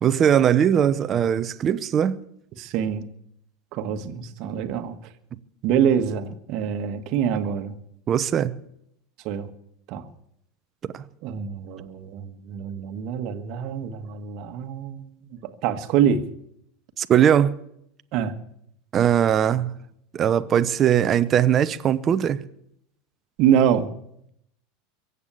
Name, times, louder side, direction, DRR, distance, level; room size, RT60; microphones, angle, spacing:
voice 1, 0.0-2.2 8.1-8.5 10.9-11.0 17.0-17.5 18.9-19.7 20.1-22.4, right 9 dB, 35° right, 0.9 m, -20 dB
voice 2, 2.6-3.0 3.7-4.9 5.6-7.7 9.2-9.5 9.9-10.0 11.2-16.2 18.1-18.3 23.4-23.9, right 8 dB, 55° right, 1.5 m, -25 dB
23.5 x 8.4 x 7.0 m
hypercardioid pair, 90°, 0 cm